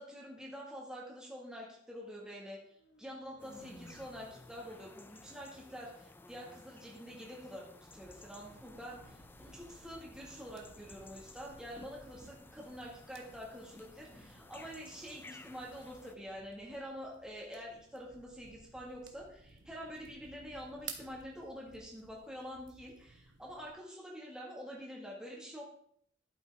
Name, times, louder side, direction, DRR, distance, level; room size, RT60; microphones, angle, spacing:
voice 1, 0.0-2.6 3.0-7.6 7.9-25.6, equal, 5° right, -4 dB, 1.6 m, -47 dB
sound 1, 2.5-6.6, left 1 dB, 65° left, 1.4 m, -60 dB
sound 2, 3.4-16.2, left 2 dB, 10° left, 0.3 m, -56 dB
sound 3, 7.9-23.7, right 6 dB, 80° right, 1.1 m, -56 dB
11.5 x 5.9 x 3.4 m, 0.66 s
head